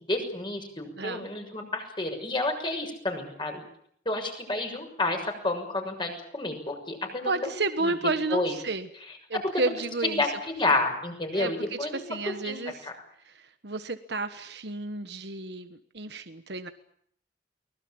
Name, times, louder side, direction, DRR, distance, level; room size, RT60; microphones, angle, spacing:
voice 1, 0.1-3.6 4.0-7.5 7.8-7.9 8.3-8.5 10.0-12.0 12.4-12.9, left 2 dB, 25° left, 4 dB, 6.6 m, -30 dB
voice 2, 1.0-1.3 7.2-8.9 9.3-10.2 11.3-11.8 12.1-12.9 13.2-16.7, right 3 dB, 65° right, 9 dB, 1.4 m, -31 dB
24.0 x 20.5 x 8.8 m, 0.66 s
head